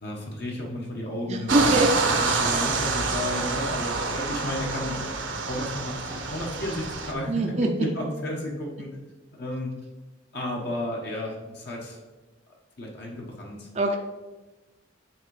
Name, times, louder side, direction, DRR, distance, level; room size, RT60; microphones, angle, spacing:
voice 1, 0.0-4.9 5.5-8.9 9.3-9.7 10.3-12.0 12.8-13.7, left 1 dB, 55° left, -1 dB, 1.2 m, -33 dB
voice 2, 1.2-1.9 7.3-7.7 13.7-14.0, right 2 dB, 35° right, 2 dB, 0.5 m, -23 dB
sound 1, 1.5-7.1, right 4 dB, 70° right, 0.9 m, -27 dB
7.7 x 3.7 x 4.8 m, 1.2 s
head